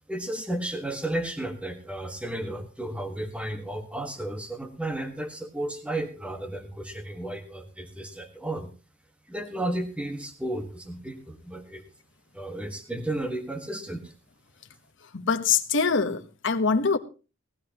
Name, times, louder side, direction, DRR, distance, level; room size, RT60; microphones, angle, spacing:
voice 1, 0.1-8.7 9.2-11.8 12.3-14.1, right 1 dB, 5° right, 1.5 m, -33 dB
voice 2, 15.1-17.0, left 5 dB, 65° left, 1.1 m, -24 dB
18.5 x 13.0 x 3.0 m
head